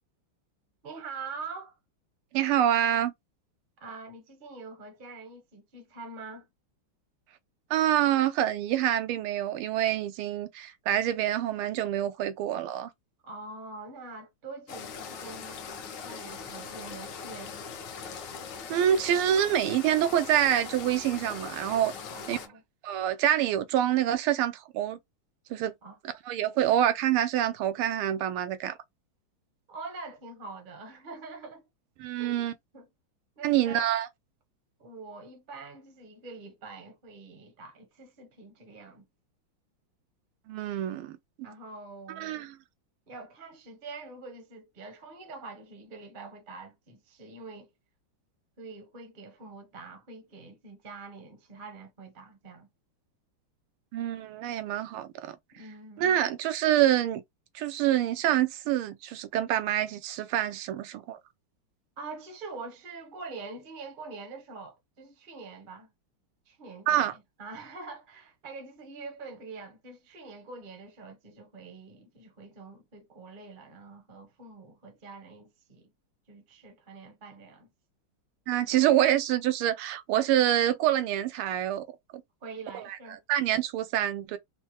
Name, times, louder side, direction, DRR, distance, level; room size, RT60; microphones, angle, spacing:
voice 1, 0.8-1.8 3.8-6.5 13.2-15.6 16.0-17.5 22.1-22.6 25.8-26.0 29.7-31.7 32.2-32.4 32.7-32.9 33.4-33.9 34.8-39.1 41.4-42.5 43.1-47.7 48.6-52.7 55.5-56.2 62.0-65.9 66.5-75.9 76.3-77.7 82.4-83.2, right 3 dB, 40° right, 0.7 m, -44 dB
voice 2, 2.3-3.1 7.7-12.9 18.7-21.9 22.3-22.4 22.8-25.0 25.5-25.7 26.3-28.7 32.0-32.5 33.4-34.1 40.5-41.2 42.2-42.6 53.9-55.4 56.0-57.2 57.5-61.2 66.9-67.1 78.5-81.8 82.7-82.8 83.3-84.4, right 11 dB, 85° right, 1.5 m, -26 dB
sound 1, 14.7-22.5, left 6 dB, 65° left, 1.3 m, -41 dB
4.3 x 2.1 x 2.8 m
omnidirectional pair, 2.3 m